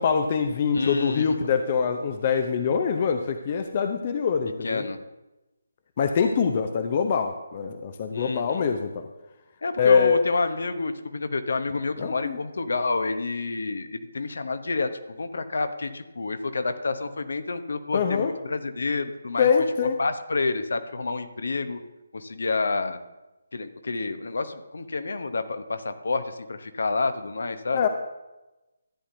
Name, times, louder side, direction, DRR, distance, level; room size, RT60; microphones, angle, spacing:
voice 1, 0.0-4.8 6.0-9.1 9.8-10.2 12.0-12.4 17.9-18.3 19.4-20.0 27.7-27.9, left 6 dB, 35° left, 7 dB, 0.6 m, -24 dB
voice 2, 0.7-1.5 4.6-5.0 8.1-8.7 9.6-19.5 19.8-21.8 22.1-23.0 23.5-27.9, left 3 dB, 60° left, 9 dB, 0.9 m, -29 dB
13.5 x 9.6 x 2.7 m, 1.0 s
figure-of-eight pair, 145°, 0 cm